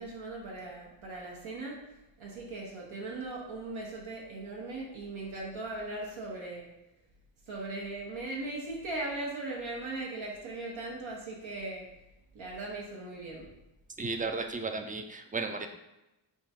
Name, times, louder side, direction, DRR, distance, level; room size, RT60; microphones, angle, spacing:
voice 1, 0.0-1.8 2.2-6.7 7.5-11.9 12.3-13.5, right 2 dB, 75° right, -3 dB, 0.9 m, -39 dB
voice 2, 14.0-15.7, right 3 dB, 20° right, 6 dB, 0.3 m, -34 dB
3.6 x 2.3 x 4.2 m, 0.96 s
cardioid pair, 50°, 49 cm